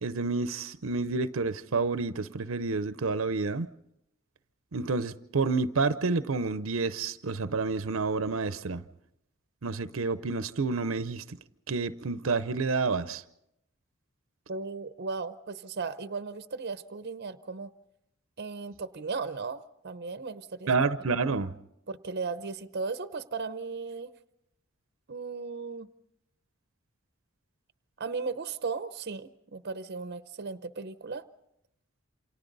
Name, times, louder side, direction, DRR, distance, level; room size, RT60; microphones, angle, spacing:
voice 1, 0.0-3.7 4.7-8.8 9.6-11.4 11.7-13.2 20.7-21.5, right 4 dB, 85° right, 0.7 m, -29 dB
voice 2, 14.5-17.7 18.4-20.7 21.9-24.1 25.1-25.9 28.0-31.3, right 4 dB, 55° right, 0.7 m, -36 dB
28.5 x 26.5 x 4.0 m
head